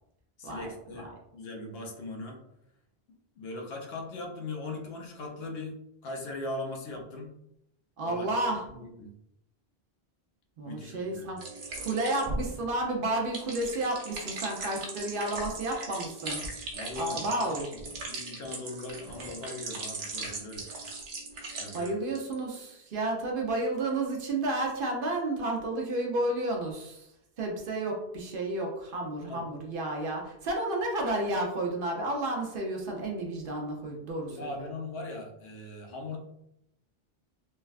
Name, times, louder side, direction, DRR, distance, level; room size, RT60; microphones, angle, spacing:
voice 1, 0.4-2.4 3.4-7.3 8.0-8.3 8.7-9.1 10.7-11.4 16.7-17.4 18.1-20.7 21.6-21.9 29.3-29.5 34.3-36.2, left 2 dB, 75° left, 1 dB, 0.8 m, -39 dB
voice 2, 8.0-8.6 10.6-11.4 11.8-16.4 17.0-17.7 21.7-27.1 27.4-34.7, right 2 dB, 65° right, 0 dB, 0.7 m, -31 dB
sound 1, 11.4-21.9 22.2-22.6, right 3 dB, 85° right, 1.0 m, -38 dB
3.3 x 2.1 x 2.3 m, 0.80 s
omnidirectional pair, 1.0 m